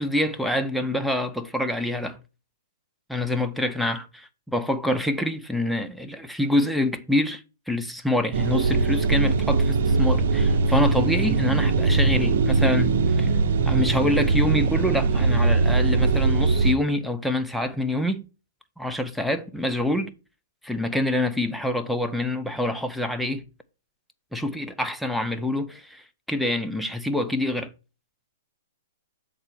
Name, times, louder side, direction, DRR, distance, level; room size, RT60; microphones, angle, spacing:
voice 1, 0.0-2.2 3.1-7.4 7.7-13.3 13.6-18.3 18.8-20.1 20.6-23.4 24.3-26.0 26.3-27.7, left 1 dB, ahead, 0.6 m, -26 dB
sound 1, 8.3-16.7, right 3 dB, 55° right, 1.0 m, -21 dB
7.3 x 4.1 x 6.4 m
hypercardioid pair, 150°, 0 cm